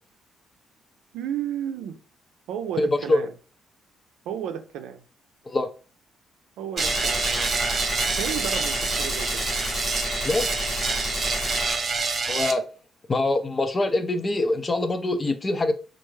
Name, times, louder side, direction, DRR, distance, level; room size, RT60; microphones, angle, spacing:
voice 1, 1.1-2.0 2.5-3.3 4.3-5.0 6.6-7.3 8.0-9.4, right 9 dB, 90° right, 0.5 m, -32 dB
voice 2, 2.8-3.2 5.5-5.7 10.2-10.5 12.3-12.6 13.1-15.7, left 2 dB, 30° left, 0.5 m, -24 dB
Gunshot gunfire, 6.8-11.8, left 2 dB, 70° left, 1.1 m, -32 dB
sound 1, 6.8-12.5, right 4 dB, 35° right, 0.7 m, -27 dB
4.4 x 2.5 x 3.1 m
cardioid pair, 90°, 0 cm